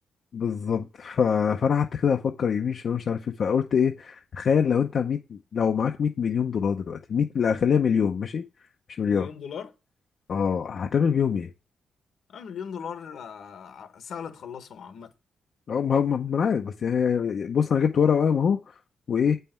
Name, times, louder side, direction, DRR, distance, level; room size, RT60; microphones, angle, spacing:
voice 1, 0.3-8.4 9.0-9.3 10.3-11.5 15.7-18.7 19.1-19.4, left 7 dB, 55° left, 0.7 m, -24 dB
voice 2, 9.0-9.7 12.3-15.1, left 7 dB, 70° left, 1.3 m, -38 dB
8.3 x 5.6 x 4.4 m
cardioid pair, 125°, 0 cm